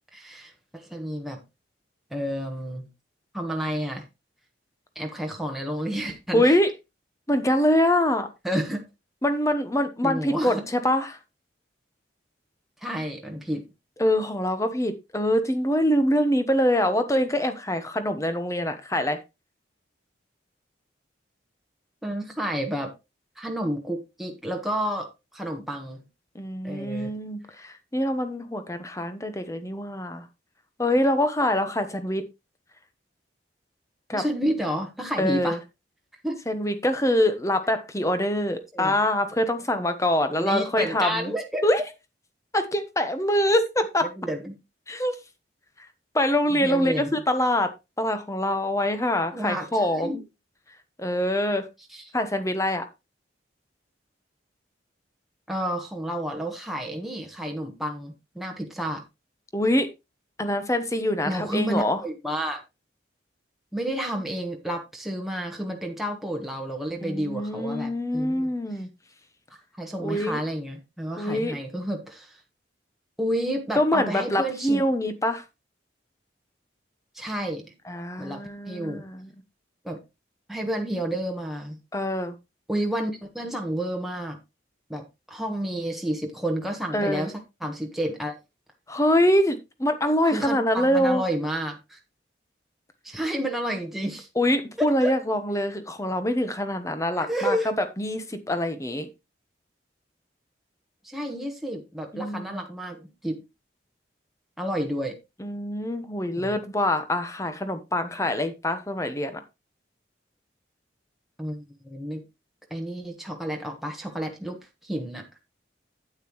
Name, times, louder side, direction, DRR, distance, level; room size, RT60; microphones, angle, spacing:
voice 1, 0.1-1.4 2.1-2.9 3.3-4.0 4.9-6.4 8.4-8.9 10.0-10.6 12.8-13.6 22.0-22.9 23.4-26.0 26.6-27.2 34.1-35.6 36.2-36.4 38.7-38.9 40.4-41.6 44.0-44.6 46.5-47.1 49.3-50.2 51.9-52.1 55.5-59.0 61.2-62.6 63.7-68.5 69.8-72.4 73.2-74.8 77.1-77.7 78.2-79.1 79.8-80.0 80.5-81.8 82.7-84.4 84.9-88.4 90.2-92.0 93.0-94.3 94.8-95.1 97.2-97.7 101.0-103.4 104.6-105.2 106.3-106.6 111.4-112.2 112.7-115.2, equal, ahead, 1.3 m, -30 dB
voice 2, 6.3-6.7 7.3-8.3 9.2-11.2 14.0-19.2 26.3-30.3 30.8-32.2 34.1-34.2 35.2-35.6 36.5-41.3 41.6-41.8 42.5-44.1 44.9-45.1 46.1-47.7 48.0-50.2 51.0-51.7 52.1-52.8 59.5-59.9 60.4-62.0 67.0-68.9 70.0-70.4 71.2-71.6 73.7-75.4 77.9-79.3 81.9-82.4 86.9-87.3 88.9-91.2 94.4-99.1 102.1-102.6 105.4-109.4, left 1 dB, 15° left, 1.0 m, -24 dB
9.0 x 8.9 x 3.1 m
head